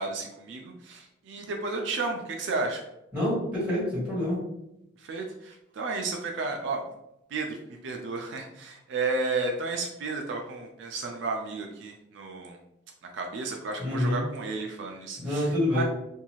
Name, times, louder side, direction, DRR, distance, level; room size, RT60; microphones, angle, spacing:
voice 1, 0.0-2.9 5.0-6.8 7.3-12.6 13.0-15.8, right 3 dB, 70° right, 2 dB, 0.4 m, -33 dB
voice 2, 3.1-4.4 13.8-14.2 15.2-15.8, left 1 dB, 10° right, -8 dB, 1.5 m, -27 dB
2.6 x 2.3 x 3.0 m, 0.84 s
head